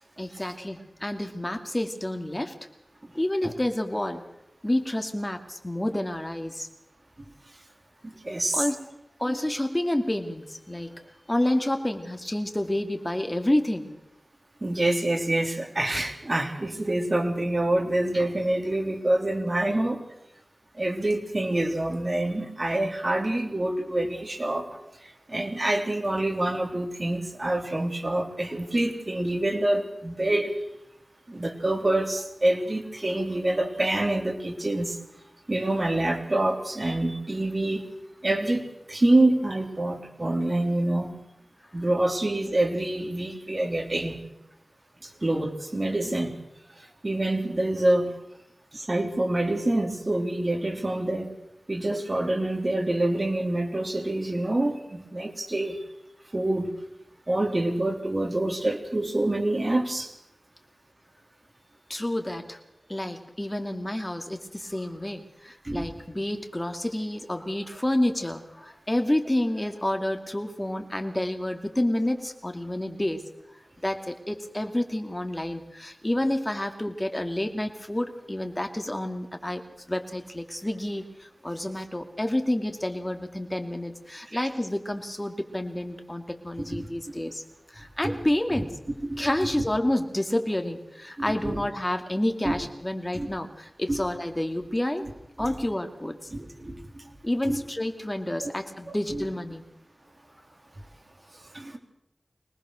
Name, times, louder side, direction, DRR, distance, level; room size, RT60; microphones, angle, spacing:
voice 1, 0.2-2.5 3.1-4.2 4.6-6.7 8.5-8.8 9.2-11.0 11.3-13.9 61.9-62.6 62.9-73.2 73.5-79.6 79.9-87.4 87.7-88.7 89.2-95.1 95.4-96.3 97.2-99.6, left 1 dB, 20° left, 5 dB, 2.5 m, -29 dB
voice 2, 8.0-8.6 9.3-9.4 14.6-20.0 20.8-24.7 25.3-30.5 31.3-35.0 35.5-37.9 38.2-41.2 41.7-44.2 45.0-46.3 47.0-48.1 48.7-51.3 51.7-55.8 56.3-56.7 57.3-60.1 65.7-65.9 84.3-84.5 86.7-86.9 88.0-88.2 89.1-89.3 92.4-92.5 93.1-93.3 93.9-94.0 95.4-95.5 96.3-96.8 97.5-97.6 98.4-98.5 98.9-99.0 101.5-101.8, right 1 dB, 40° right, 3 dB, 3.6 m, -26 dB
25.0 x 19.0 x 6.6 m, 0.85 s
wide cardioid pair, 75°, 0 cm